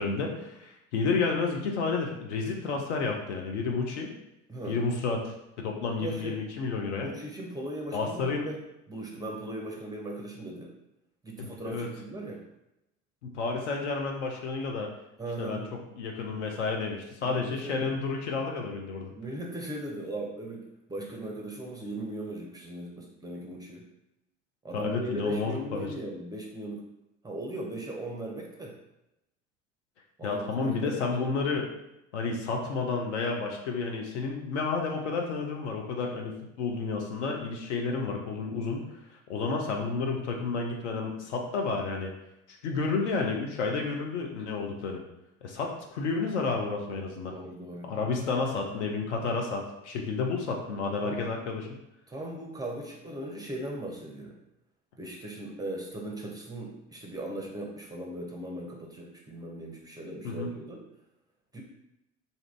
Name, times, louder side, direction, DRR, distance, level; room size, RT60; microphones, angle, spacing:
voice 1, 0.0-4.1 4.7-7.1 7.9-8.5 11.4-11.9 13.2-14.9 15.4-19.1 24.7-25.9 30.2-31.7 32.1-38.8 39.3-42.1 42.6-45.0 45.4-47.3 47.8-51.8 60.2-60.5, left 4 dB, 65° left, 1 dB, 0.7 m, -31 dB
voice 2, 6.0-6.4 7.0-8.6 8.9-10.7 11.2-12.4 15.2-15.7 17.2-18.0 19.1-23.8 24.6-26.9 27.2-28.8 30.2-31.1 47.3-47.9 51.0-51.2 52.1-54.3 55.0-60.8 61.5-61.6, right 1 dB, 10° right, -2 dB, 0.5 m, -38 dB
2.7 x 2.5 x 3.2 m, 0.88 s
figure-of-eight pair, 70°, 37 cm